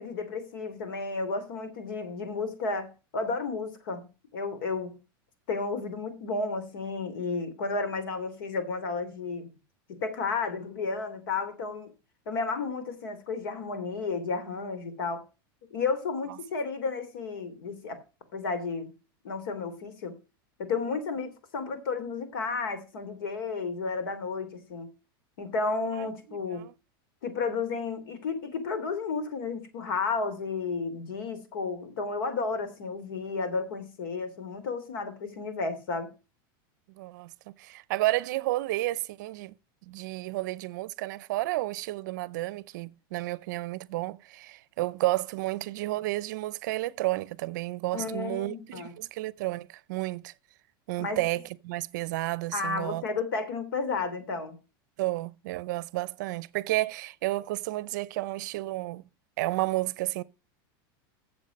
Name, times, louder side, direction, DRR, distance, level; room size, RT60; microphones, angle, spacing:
voice 1, 0.0-4.1 4.3-4.9 5.5-9.5 9.9-11.9 12.3-15.2 15.7-18.0 18.3-18.9 19.2-20.1 20.6-24.9 25.4-26.7 27.2-36.1 47.9-48.9 51.0-51.2 52.5-54.6, left 4 dB, 70° left, 3.0 m, -32 dB
voice 2, 26.0-26.7 37.0-39.5 39.9-50.3 50.9-53.0 55.0-59.0 59.4-60.2, right 18 dB, 50° right, 0.6 m, -31 dB
14.0 x 7.4 x 5.3 m
supercardioid pair, 175°, 12 cm